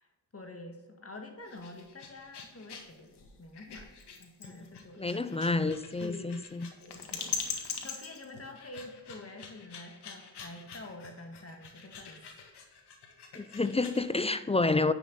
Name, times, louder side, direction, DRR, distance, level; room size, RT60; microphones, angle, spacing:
voice 1, 0.0-3.9 4.2-5.4 6.0-6.4 6.8-12.2 14.2-14.3, left 2 dB, 30° left, 2.0 m, -47 dB
sound 1, 1.4-14.1, left 6 dB, 55° left, 1.8 m, -43 dB
voice 2, 4.5-6.7 13.3-14.9, left 3 dB, 15° left, 0.4 m, -29 dB
9.6 x 6.5 x 4.1 m
hypercardioid pair, 45°, 47 cm